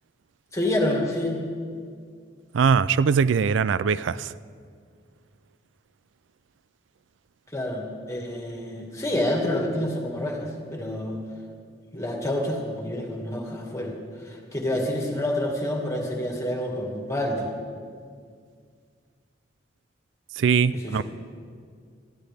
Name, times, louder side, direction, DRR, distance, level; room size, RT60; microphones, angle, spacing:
voice 1, 0.5-1.4 7.5-11.2 11.9-14.0 14.2-17.5 20.8-21.0, left 1 dB, 15° left, 0 dB, 2.0 m, -28 dB
voice 2, 2.5-4.3 20.4-21.0, right 6 dB, 80° right, 17 dB, 0.4 m, -21 dB
19.0 x 13.5 x 3.5 m, 2.1 s
head